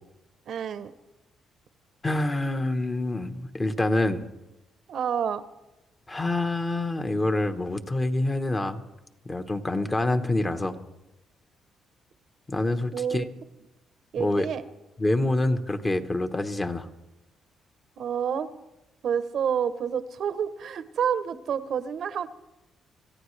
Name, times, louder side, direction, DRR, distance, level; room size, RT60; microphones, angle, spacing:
voice 1, 0.5-0.9 4.9-5.4 12.9-13.3 14.1-14.6 18.0-18.5 19.0-22.3, right 8 dB, 65° right, 13 dB, 0.8 m, -28 dB
voice 2, 2.0-4.2 6.1-8.8 9.2-10.8 12.5-13.2 14.2-14.5 15.0-16.9, left 2 dB, 25° left, 8 dB, 1.2 m, -26 dB
26.0 x 14.5 x 3.3 m, 0.99 s
cardioid pair, 90°, 0 cm